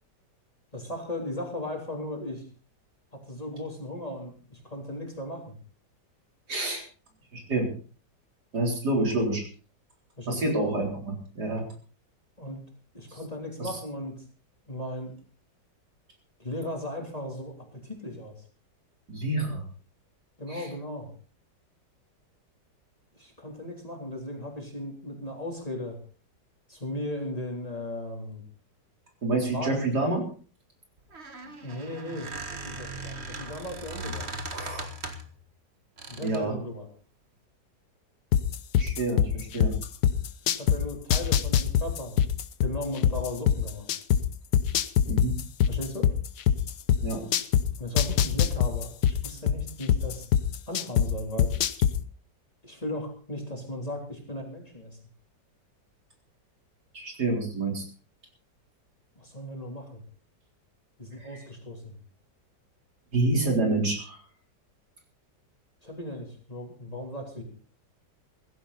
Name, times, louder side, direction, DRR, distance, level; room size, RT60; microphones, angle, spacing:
voice 1, 0.7-2.4 3.1-5.6 10.2-10.5 12.4-12.6 12.9-14.2 14.7-15.1 16.4-18.4 20.4-21.1 23.1-26.0 26.7-28.4 29.5-29.9 31.4-34.3 36.1-36.9 40.4-42.2 42.6-43.9 45.7-46.1 47.8-50.3 50.7-51.5 52.6-55.0 59.1-60.0 61.0-62.0 65.8-67.4, left 1 dB, 20° left, 1 dB, 3.4 m, -36 dB
voice 2, 6.5-6.8 7.3-7.7 8.5-9.5 10.3-11.6 13.6-13.7 19.1-19.6 20.5-20.7 29.2-30.2 34.5-34.8 36.2-36.6 38.7-39.7 45.1-45.3 47.0-47.2 56.9-57.8 61.2-61.3 63.1-64.2, right 2 dB, 65° right, 2 dB, 4.5 m, -28 dB
Squeak, 31.0-35.4 36.0-36.5, right 2 dB, 35° right, 1.9 m, -38 dB
sound 1, 38.3-40.8 41.1-44.2 44.5-47.6 48.0-51.1 51.4-51.9, left 9 dB, 70° left, 1.5 m, -22 dB
16.5 x 15.5 x 4.1 m, 0.39 s
omnidirectional pair, 1.9 m